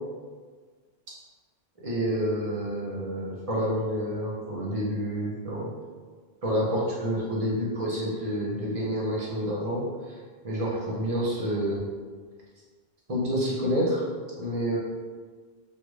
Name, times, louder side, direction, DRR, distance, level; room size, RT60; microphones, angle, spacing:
voice 1, 1.8-5.7 6.4-9.8 10.4-11.9 13.1-14.0 14.4-14.8, equal, 35° right, -6 dB, 0.8 m, -28 dB
3.3 x 2.4 x 3.1 m, 1.5 s
omnidirectional pair, 1.1 m